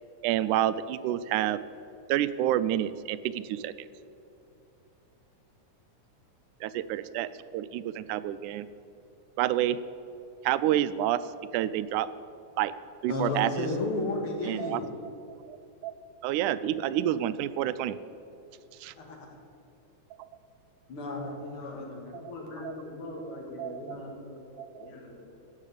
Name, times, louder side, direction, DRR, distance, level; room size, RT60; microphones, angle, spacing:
voice 1, 0.2-1.6 2.1-3.7 6.6-8.7 9.4-9.8 10.4-11.2 11.5-12.1 12.6-12.7 13.0-13.7 14.5-14.8 15.4-15.6 15.8-15.9 16.2-18.0 18.8-18.9 20.2-20.3 22.2-22.3 22.6-22.7 23.2-24.0 24.6-24.9, right 12 dB, 90° right, 14 dB, 2.0 m, -29 dB
voice 2, 13.1-14.9 19.0-19.3 20.9-22.1, left 2 dB, 50° left, 1 dB, 2.6 m, -33 dB
voice 3, 21.3-24.5 24.8-25.3, left 2 dB, 90° left, 0 dB, 3.2 m, -42 dB
16.5 x 6.5 x 8.3 m, 2.8 s
omnidirectional pair, 3.5 m